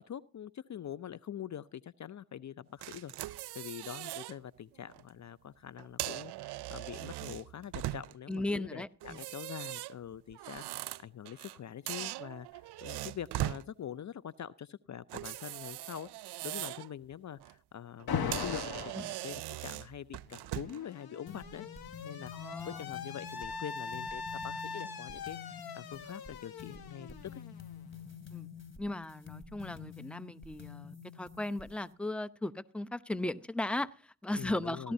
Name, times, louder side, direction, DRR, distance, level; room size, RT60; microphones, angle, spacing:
voice 1, 0.0-16.1 16.4-21.7 22.0-27.4 34.3-34.9, left 9 dB, 45° left, 0.6 m, -44 dB
sound 1, 2.8-4.3 4.8-5.0 5.8-8.3 9.0-11.6 11.9-13.6 15.1-16.9 17.3-17.5 18.0-18.1 18.3-20.8, right 16 dB, 75° right, 0.5 m, -40 dB
voice 2, 8.3-9.2 19.0-19.1 22.3-22.8 28.3-28.5 28.8-34.9, left 1 dB, 5° left, 0.7 m, -37 dB
Alarm, 18.1-19.0 20.3-28.0, left 6 dB, 65° left, 1.2 m, -41 dB
sound 2, 21.3-31.9, left 7 dB, 30° left, 2.7 m, -49 dB
17.5 x 12.5 x 2.7 m
supercardioid pair, 45°, 40 cm